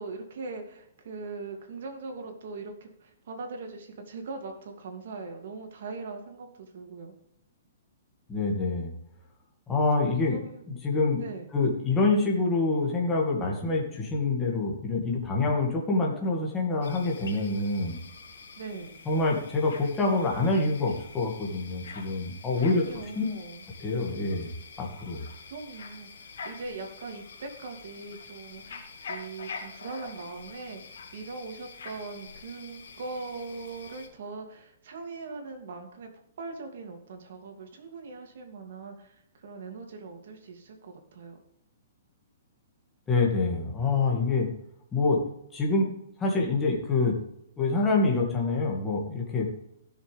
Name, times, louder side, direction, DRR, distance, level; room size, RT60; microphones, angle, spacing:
voice 1, 0.0-7.1 10.3-10.6 11.2-11.5 18.6-19.0 22.5-23.6 25.5-36.1 36.4-41.4, right 3 dB, 60° right, 4 dB, 2.6 m, -40 dB
voice 2, 8.3-8.9 9.7-10.4 10.7-11.2 11.5-18.0 19.1-22.8 23.2-23.3 23.8-24.5 24.8-25.2 43.1-44.5 44.9-45.2 45.5-45.9 46.2-47.2 47.6-49.5, left 3 dB, 10° left, -2 dB, 2.1 m, -26 dB
sound 1, 16.8-34.1, left 5 dB, 70° left, 2.8 m, -46 dB
16.0 x 6.9 x 3.5 m, 0.74 s
hypercardioid pair, 165°, 0 cm